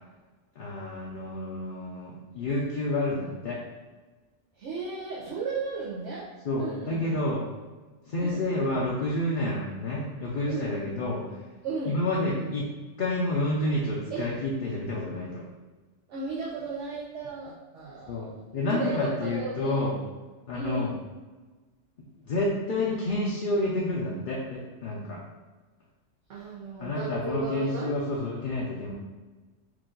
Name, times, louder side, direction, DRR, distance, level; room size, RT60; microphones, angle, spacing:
voice 1, 0.6-3.6 6.4-7.5 8.1-11.4 11.9-12.7 13.0-15.5 18.1-19.9 20.5-21.0 22.3-25.2 26.8-28.9, left 1 dB, 55° left, -4 dB, 0.7 m, -29 dB
voice 2, 4.6-7.2 8.2-8.4 10.5-10.7 11.6-12.0 14.1-14.3 16.1-18.2 18.5-19.8 20.5-21.0 26.3-27.9, right 3 dB, 85° right, -6 dB, 1.1 m, -35 dB
4.7 x 2.5 x 3.8 m, 1.3 s
omnidirectional pair, 1.2 m